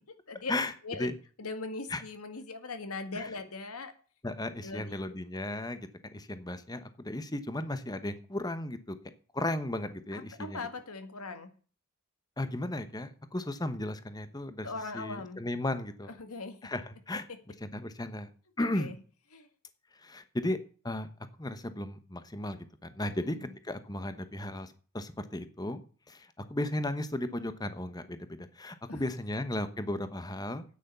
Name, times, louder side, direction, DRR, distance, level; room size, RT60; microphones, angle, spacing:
voice 1, 1.4-3.9 4.6-5.0 10.1-11.5 14.6-15.4 16.2-16.6 17.3-17.4 18.6-19.0 19.3-19.5 23.1-23.5 28.9-29.0, left 3 dB, 80° left, 8 dB, 1.9 m, -40 dB
voice 2, 4.2-9.0 9.3-10.6 12.4-16.1 16.6-17.3 17.6-18.3 18.6-18.9 20.0-20.6 20.8-21.1 21.4-23.4 23.6-30.6, left 1 dB, 20° left, 11 dB, 1.0 m, -35 dB
9.5 x 9.4 x 6.8 m, 0.40 s
head